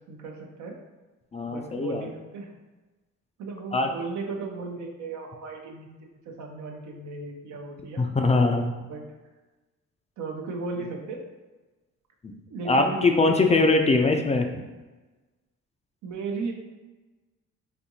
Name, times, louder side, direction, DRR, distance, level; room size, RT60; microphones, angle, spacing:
voice 1, 0.1-0.8 1.5-2.5 3.4-5.9 6.3-8.0 8.9-9.0 10.2-11.2 12.5-13.6 16.0-16.5, right 3 dB, 75° right, 2 dB, 0.7 m, -35 dB
voice 2, 1.3-2.1 3.7-3.9 8.0-8.7 12.7-14.6, left 3 dB, 25° left, 4 dB, 0.3 m, -22 dB
4.2 x 2.6 x 2.7 m, 1.2 s
cardioid pair, 90°, 30 cm